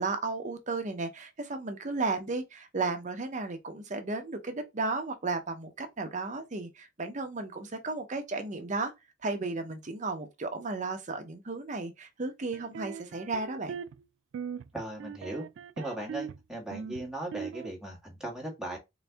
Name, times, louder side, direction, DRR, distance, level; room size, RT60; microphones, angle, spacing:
voice 1, 0.0-8.9 9.2-13.8, right 3 dB, 40° right, 0.7 m, -34 dB
sound 1, 12.5-14.0 14.3-14.7 15.0-16.4 16.7-17.7, right 7 dB, 90° right, 0.3 m, -40 dB
voice 2, 14.7-15.5 15.8-18.8, right 1 dB, 5° right, 1.4 m, -38 dB
4.0 x 2.6 x 3.4 m
head